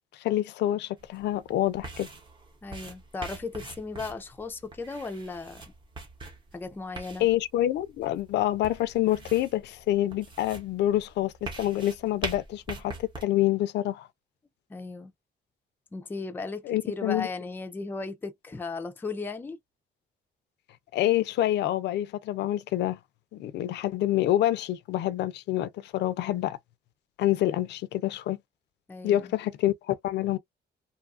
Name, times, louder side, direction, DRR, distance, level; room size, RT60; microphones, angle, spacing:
voice 1, 0.1-2.1 7.2-14.1 16.6-17.3 20.9-23.0 23.3-26.6 27.2-28.4 29.0-30.4, left 14 dB, 85° left, 0.4 m, -27 dB
sound 1, 1.0-13.2, right 3 dB, 30° right, 0.8 m, -43 dB
voice 2, 2.6-5.6 6.5-7.3 14.7-15.1 15.9-19.6 28.9-29.3, left 3 dB, 10° left, 0.3 m, -36 dB
2.6 x 2.3 x 2.4 m
cardioid pair, 160°, 17 cm